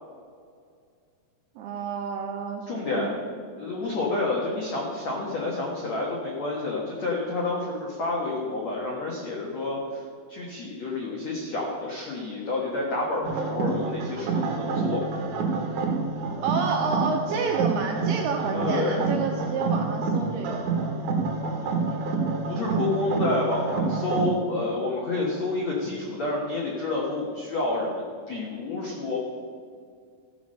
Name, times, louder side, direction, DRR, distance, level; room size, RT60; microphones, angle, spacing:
voice 1, 1.6-3.2 16.4-20.6, right 5 dB, 80° right, 1 dB, 2.3 m, -29 dB
voice 2, 2.7-3.2 3.6-10.0 10.3-15.0 18.5-19.1 21.6-21.8 22.5-29.2, left 2 dB, 90° left, -3 dB, 1.5 m, -29 dB
sound 1, 13.2-24.3, right 4 dB, 65° right, 2.1 m, -28 dB
14.5 x 6.0 x 6.3 m, 2.1 s
omnidirectional pair, 5.4 m